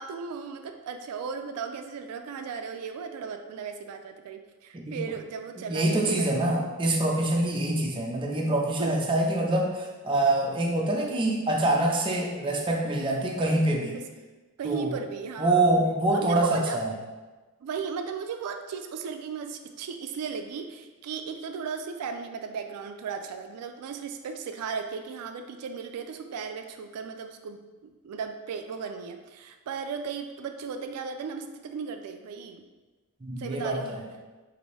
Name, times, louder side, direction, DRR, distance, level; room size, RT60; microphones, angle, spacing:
voice 1, 0.0-6.6 8.8-9.0 13.9-14.0 14.6-15.7 16.1-16.8 17.6-32.6 33.4-34.0, right 5 dB, 90° right, 6 dB, 0.3 m, -36 dB
voice 2, 5.6-14.0 14.6-14.9 15.4-16.9 33.2-34.0, right 1 dB, 20° right, -1 dB, 0.4 m, -25 dB
4.0 x 2.6 x 3.1 m, 1.2 s
head